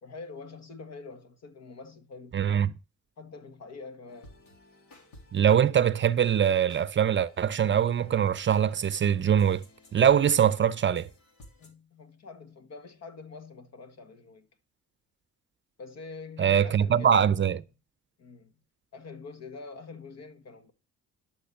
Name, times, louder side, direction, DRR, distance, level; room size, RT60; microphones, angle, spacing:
voice 1, 0.0-2.4 3.2-4.4 11.6-14.5 15.8-17.6 18.2-18.5 18.9-20.7, left 4 dB, 60° left, 1.8 m, -45 dB
voice 2, 2.3-2.7 5.3-9.6 9.9-11.1 16.4-17.6, right 8 dB, 40° right, 0.6 m, -23 dB
sound 1, 4.1-11.7, left 1 dB, 80° left, 3.2 m, -55 dB
12.0 x 6.1 x 5.8 m
cardioid pair, 90°, 30 cm